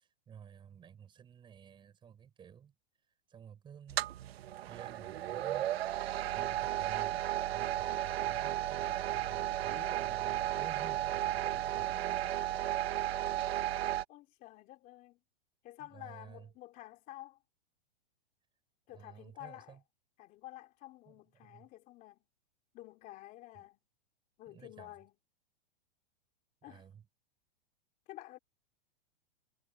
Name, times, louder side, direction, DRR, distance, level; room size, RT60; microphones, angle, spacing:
voice 1, 0.0-2.7 3.3-4.1 4.7-5.7 6.2-12.4 15.8-16.5 18.9-19.8 21.1-21.7 24.5-24.9 26.6-27.0, right 8 dB, 15° right, 7.4 m, -53 dB
sound 1, 3.9-14.0, right 13 dB, 75° right, 1.2 m, -34 dB
voice 2, 9.7-10.0 11.2-11.3 14.1-15.2 15.6-17.4 18.9-19.8 20.2-22.3 22.7-23.8 24.4-25.1 26.6-26.9 28.1-28.4, left 16 dB, 25° left, 3.0 m, -51 dB
supercardioid pair, 165°, 32 cm